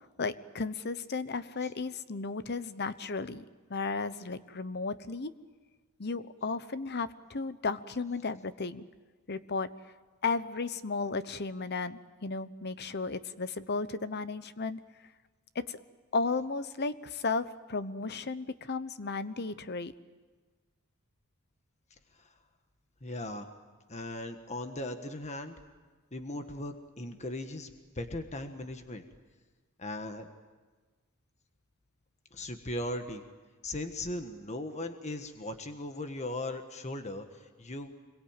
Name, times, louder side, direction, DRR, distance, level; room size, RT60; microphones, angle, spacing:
voice 1, 0.2-5.3 6.0-8.9 9.3-9.7 10.2-14.8 15.5-15.8 16.1-19.9, left 4 dB, 50° left, 13 dB, 1.0 m, -34 dB
voice 2, 23.0-23.5 23.9-25.5 26.1-29.0 29.8-30.3 32.3-33.2 33.6-37.9, left 1 dB, 30° left, 7 dB, 1.5 m, -38 dB
26.5 x 22.5 x 9.1 m, 1.3 s
head